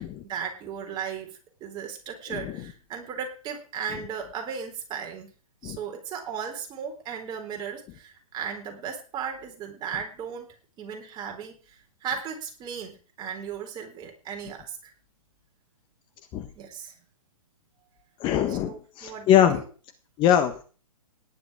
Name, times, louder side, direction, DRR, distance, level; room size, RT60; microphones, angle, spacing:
voice 1, 0.0-5.3 5.6-14.9 16.6-16.9 18.5-19.7, right 7 dB, 25° right, 4 dB, 4.0 m, -36 dB
voice 2, 18.2-19.6 20.2-20.6, left 10 dB, 25° left, 8 dB, 1.5 m, -22 dB
17.5 x 11.0 x 4.9 m, 0.38 s
figure-of-eight pair, 130°, 19 cm